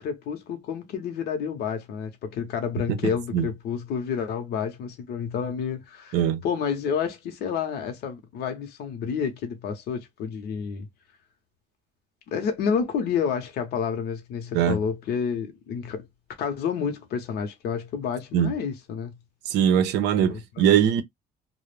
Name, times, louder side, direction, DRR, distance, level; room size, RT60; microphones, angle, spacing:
voice 1, 0.0-6.2 6.4-10.9 12.3-16.0 16.4-19.2 20.2-20.7, left 6 dB, 70° left, 0.7 m, -29 dB
voice 2, 19.5-21.0, right 9 dB, 85° right, 0.6 m, -21 dB
2.3 x 2.0 x 3.1 m
cardioid pair, 110°, 17 cm